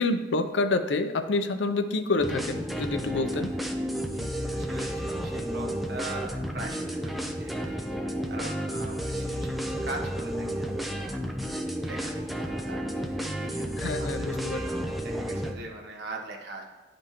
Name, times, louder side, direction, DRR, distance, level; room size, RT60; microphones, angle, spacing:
voice 1, 0.0-3.5 13.8-14.6, left 3 dB, 85° left, 9 dB, 0.6 m, -27 dB
sound 1, 2.2-15.5, equal, ahead, 0.5 m, -32 dB
voice 2, 4.0-16.6, right 2 dB, 65° right, 0 dB, 1.3 m, -42 dB
11.0 x 5.2 x 3.0 m, 1.2 s
head